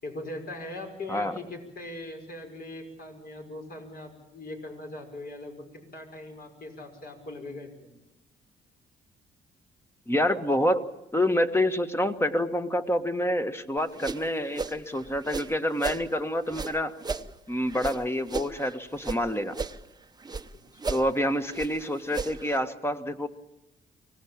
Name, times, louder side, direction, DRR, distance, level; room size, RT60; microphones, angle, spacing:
voice 1, 0.0-7.9 20.7-21.1, left 2 dB, 50° left, 3 dB, 6.0 m, -40 dB
voice 2, 10.1-10.8 11.1-17.0 17.5-19.6 20.9-23.3, left 1 dB, 10° left, 8 dB, 1.6 m, -27 dB
sound 1, 13.8-16.1 16.5-19.2 19.5-20.5 20.8-22.6, right 4 dB, 20° right, 1.0 m, -35 dB
24.5 x 18.0 x 8.8 m, 0.91 s
cardioid pair, 90°, 20 cm